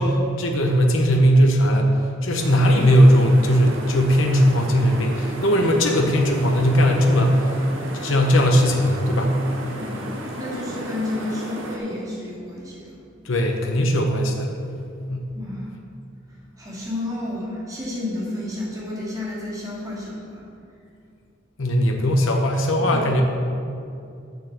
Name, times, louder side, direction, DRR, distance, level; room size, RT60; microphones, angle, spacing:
voice 1, 0.0-1.9 2.2-7.5 8.0-9.3 9.6-9.8 13.2-14.5 15.1-15.2 21.6-23.2, equal, 75° left, 2 dB, 1.0 m, -18 dB
sound 1, 2.4-11.8, right 1 dB, 80° right, 1.4 m, -34 dB
voice 2, 9.8-10.1 10.3-13.0 15.3-15.7 16.6-20.4, left 2 dB, 20° right, -6 dB, 2.6 m, -31 dB
7.9 x 7.0 x 6.6 m, 2.5 s
head